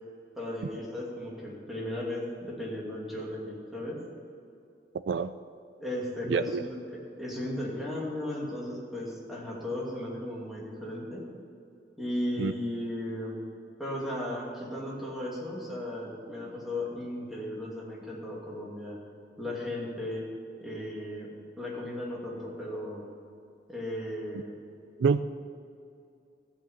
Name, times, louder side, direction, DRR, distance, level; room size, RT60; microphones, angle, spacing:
voice 1, 0.4-4.0 5.8-11.3 12.0-13.4 13.8-19.0 19.4-20.2 20.6-21.3 21.6-23.0 23.7-24.6, left 1 dB, ahead, -5 dB, 2.6 m, -36 dB
voice 2, 6.3-6.6 12.4-12.5 25.0-25.2, right 5 dB, 80° right, 11 dB, 0.4 m, -26 dB
15.0 x 5.8 x 8.2 m, 2.5 s
head